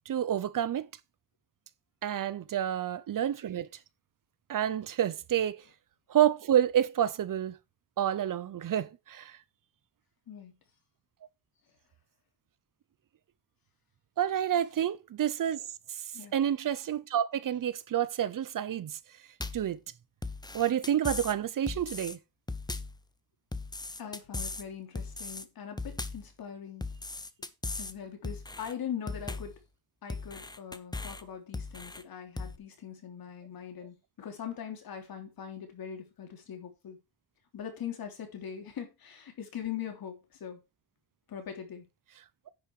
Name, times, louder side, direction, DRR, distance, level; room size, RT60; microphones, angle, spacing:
voice 1, 0.1-0.9 2.0-3.7 4.5-5.6 6.1-7.6 8.0-9.4 14.2-15.7 16.3-19.0 19.5-19.8 20.5-22.2, right 10 dB, 60° right, 0.9 m, -29 dB
sound 1, 19.4-19.7 20.2-21.4 21.7-22.2 22.5-23.0 23.5-24.7 25.0-25.5 25.8-26.3 26.8-27.9 28.2-28.7 29.1-29.6 30.1-31.2 31.5-32.0 32.4-32.6, left 3 dB, 10° left, 0.9 m, -38 dB
voice 2, 24.0-26.9 27.8-29.6 30.0-37.0 37.5-40.6 41.3-41.9, left 8 dB, 70° left, 3.5 m, -41 dB
10.0 x 5.9 x 4.7 m
cardioid pair, 115°, 37 cm